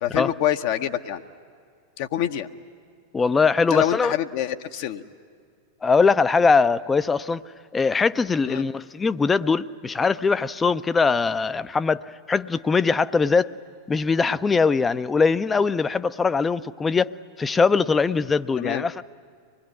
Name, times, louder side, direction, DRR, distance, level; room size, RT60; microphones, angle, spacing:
voice 1, 0.0-1.2 2.0-2.5 3.7-5.0 8.5-8.7 18.6-18.8, left 11 dB, 50° left, 0.8 m, -26 dB
voice 2, 3.1-4.1 5.8-7.4 7.7-12.0 12.3-13.5 13.9-17.1 17.4-19.0, left 4 dB, 15° left, 0.5 m, -21 dB
25.5 x 20.0 x 9.4 m
figure-of-eight pair, 90°, 0 cm